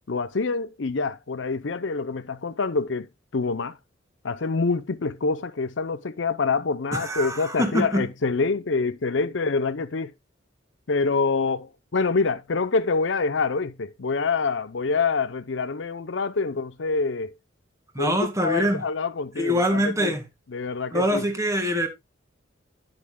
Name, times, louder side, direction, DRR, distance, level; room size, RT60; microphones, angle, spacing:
voice 1, 0.1-3.1 3.3-3.8 4.2-10.1 10.9-17.4 18.0-20.1 20.5-21.3, left 4 dB, 65° left, 0.7 m, -26 dB
voice 2, 6.9-8.1 18.0-18.8 19.4-20.2 20.9-21.9, equal, 15° right, 2.0 m, -24 dB
10.5 x 8.5 x 2.3 m
head